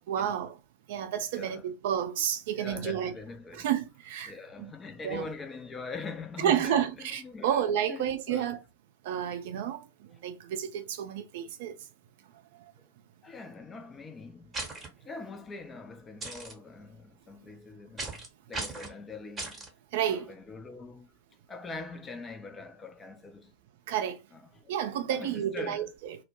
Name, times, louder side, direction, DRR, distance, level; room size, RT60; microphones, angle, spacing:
voice 1, 0.1-0.6 0.9-3.1 3.5-4.3 4.6-4.7 5.0-5.3 6.4-8.6 9.0-9.8 10.2-11.7 19.9-20.3 23.9-24.2 24.7-26.2, right 9 dB, 50° right, 0.4 m, -30 dB
voice 2, 1.3-1.7 2.5-3.7 4.3-8.5 13.2-14.6 15.0-19.7 20.0-21.2 21.5-23.5 24.3-24.8 25.1-25.9, left 4 dB, 15° left, 0.4 m, -43 dB
sound 1, 14.5-14.9 16.2-16.5 18.0-18.3 18.5-18.9 19.4-19.7, right 3 dB, 15° right, 0.8 m, -36 dB
2.1 x 2.0 x 3.0 m
figure-of-eight pair, 90°, 0 cm